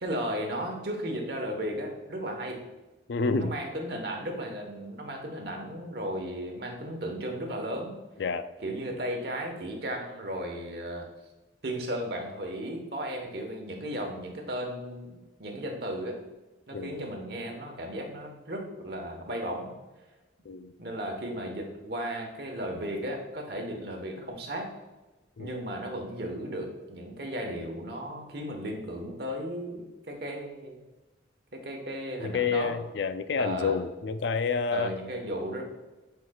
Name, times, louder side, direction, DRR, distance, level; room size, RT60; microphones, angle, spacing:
voice 1, 0.0-2.6 3.4-8.0 8.6-11.1 11.6-16.2 16.7-19.7 20.8-24.7 25.4-30.8 31.5-32.8 33.4-33.8 34.7-35.6, equal, 60° right, 2 dB, 1.2 m, -35 dB
voice 2, 3.1-3.6 8.2-8.5 16.7-17.1 20.5-20.7 25.4-25.5 32.2-34.9, left 5 dB, 75° left, 11 dB, 0.4 m, -29 dB
9.3 x 4.7 x 2.3 m, 1.1 s
head